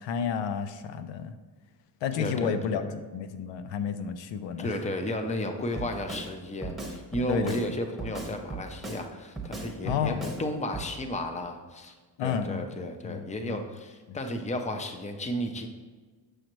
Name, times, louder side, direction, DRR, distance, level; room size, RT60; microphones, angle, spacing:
voice 1, 0.0-1.3 2.0-2.8 3.1-4.7 7.3-7.6 9.8-10.3 12.2-13.6 14.1-14.2, left 7 dB, 85° left, 10 dB, 0.6 m, -31 dB
voice 2, 2.1-3.0 4.6-11.9 12.2-15.7, left 1 dB, 15° left, 6 dB, 0.6 m, -33 dB
Drum kit, 5.8-6.3 6.6-7.7 8.0-9.0 9.4-10.4 10.7-10.9, right 3 dB, ahead, 1.1 m, -37 dB
6.5 x 6.3 x 3.0 m, 1.4 s
cardioid pair, 115°, 43 cm